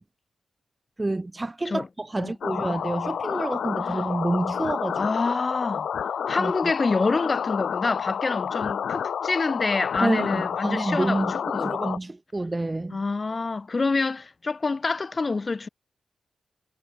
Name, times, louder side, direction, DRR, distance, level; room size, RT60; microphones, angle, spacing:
voice 1, 1.0-5.1 6.4-6.5 10.0-13.0, right 2 dB, 20° right, 0.6 m, -28 dB
sound 1, 2.4-12.0, left 8 dB, 75° left, 1.1 m, -29 dB
voice 2, 4.9-5.9 6.3-11.3 11.5-11.8 12.9-15.7, left 3 dB, 35° left, 1.0 m, -27 dB
cardioid pair, 85°, 0 cm